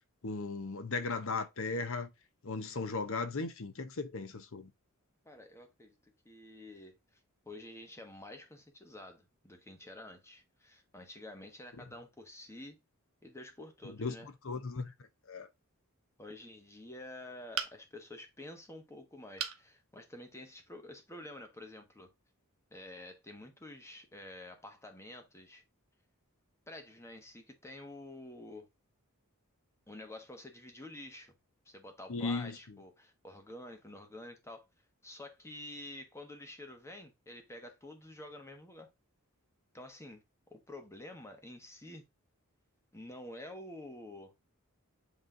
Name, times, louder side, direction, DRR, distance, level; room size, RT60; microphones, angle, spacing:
voice 1, 0.2-2.1 2.4-4.7 13.8-14.9 15.3-15.5 32.1-32.5, left 3 dB, 65° left, 0.9 m, -36 dB
voice 2, 5.2-5.9 6.2-7.0 7.4-12.8 13.2-14.3 16.2-22.1 22.7-25.6 26.7-28.7 29.9-31.3 31.6-34.6 35.0-38.9 39.7-40.2 40.5-42.0 42.9-44.3, left 1 dB, 15° left, 1.3 m, -49 dB
sound 1, 17.5-18.1 19.4-19.7 20.2-20.3 20.7-20.8, right 8 dB, 75° right, 1.0 m, -37 dB
8.1 x 3.2 x 3.8 m
head